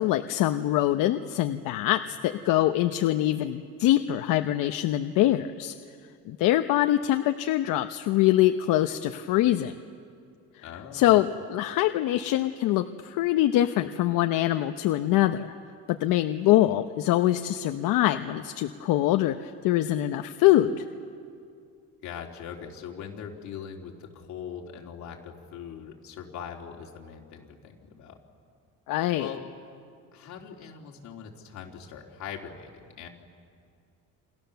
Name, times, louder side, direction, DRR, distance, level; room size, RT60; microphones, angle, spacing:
voice 1, 0.0-5.7 6.3-9.8 10.6-10.7 10.9-15.5 16.0-20.8 28.9-29.3, left 14 dB, 80° left, 7 dB, 0.9 m, -24 dB
voice 2, 10.6-11.2 22.0-28.2 29.2-29.4 30.1-33.1, left 7 dB, 60° left, 0 dB, 3.3 m, -41 dB
28.5 x 26.0 x 7.0 m, 2.3 s
cardioid pair, 155°, 32 cm